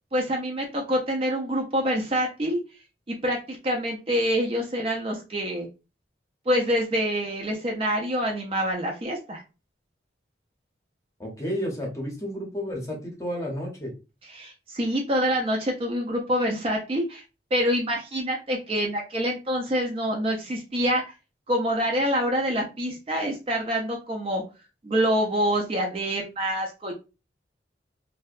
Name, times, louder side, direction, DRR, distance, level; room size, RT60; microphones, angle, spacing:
voice 1, 0.1-2.6 3.1-5.7 6.5-9.4 14.3-17.2 17.5-21.0 21.5-24.4 24.8-26.9, equal, 30° right, 0 dB, 0.4 m, -26 dB
voice 2, 11.2-13.9, equal, 15° left, -1 dB, 0.7 m, -31 dB
2.6 x 2.1 x 2.3 m, 0.30 s
head